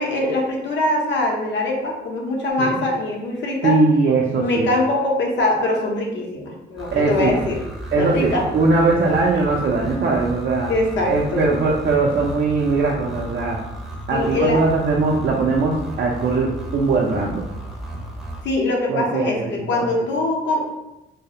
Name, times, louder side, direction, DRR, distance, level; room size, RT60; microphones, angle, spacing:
voice 1, 0.0-3.8 4.3-7.6 7.9-8.4 10.7-11.4 14.1-14.6 18.4-20.7, left 2 dB, 65° left, -1 dB, 0.6 m, -22 dB
voice 2, 3.6-4.7 6.9-7.4 7.9-10.7 11.1-13.6 14.1-17.4 18.9-19.8, right 3 dB, 50° right, -2 dB, 0.4 m, -20 dB
sound 1, 6.8-18.4, right 1 dB, ahead, 0.6 m, -34 dB
2.3 x 2.0 x 2.7 m, 0.95 s
cardioid pair, 90°, 20 cm